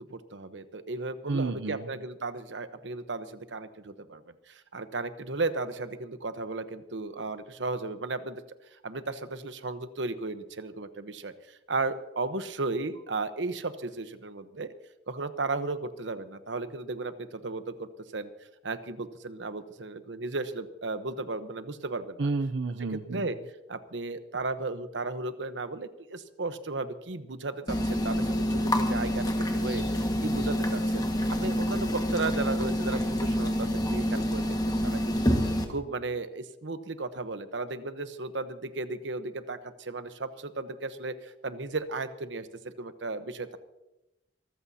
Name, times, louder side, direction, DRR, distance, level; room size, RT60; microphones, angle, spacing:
voice 1, 0.0-8.4 8.8-14.7 15.1-18.3 18.6-22.3 22.9-23.4 23.7-31.0 31.3-34.6 34.8-43.6, right 3 dB, 85° right, 10 dB, 1.0 m, -35 dB
voice 2, 1.3-1.9 22.2-23.3, right 3 dB, 70° right, 8 dB, 0.6 m, -30 dB
sound 1, 27.7-35.6, equal, 20° left, 1.7 m, -27 dB
25.0 x 14.5 x 2.8 m, 0.95 s
head